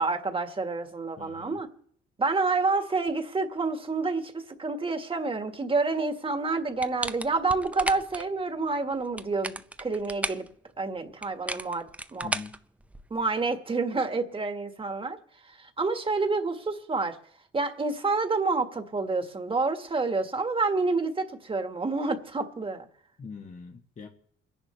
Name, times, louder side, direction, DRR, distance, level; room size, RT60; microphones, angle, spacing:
voice 1, 0.0-1.7 2.2-10.4 10.8-11.8 12.1-12.3 13.1-15.2 15.5-17.2 17.5-22.9, right 3 dB, 25° right, 1.7 m, -28 dB
voice 2, 1.2-1.6 12.2-12.6 23.2-24.1, left 5 dB, 40° left, 1.3 m, -43 dB
sound 1, 6.8-8.2 9.0-10.5 11.2-13.2, right 1 dB, 5° right, 0.6 m, -35 dB
28.5 x 10.5 x 3.3 m
cardioid pair, 90°, 20 cm